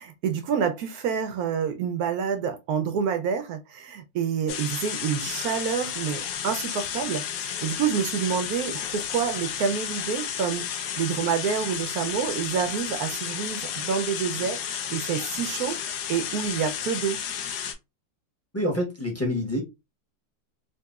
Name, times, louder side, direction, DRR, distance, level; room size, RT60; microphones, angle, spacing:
voice 1, 0.0-15.8 16.1-17.2, right 7 dB, 75° right, 0.9 m, -28 dB
sound 1, 4.5-17.7, left 8 dB, 80° left, 1.3 m, -32 dB
voice 2, 18.5-19.6, left 1 dB, 10° left, 0.7 m, -27 dB
3.7 x 2.9 x 2.3 m
omnidirectional pair, 2.0 m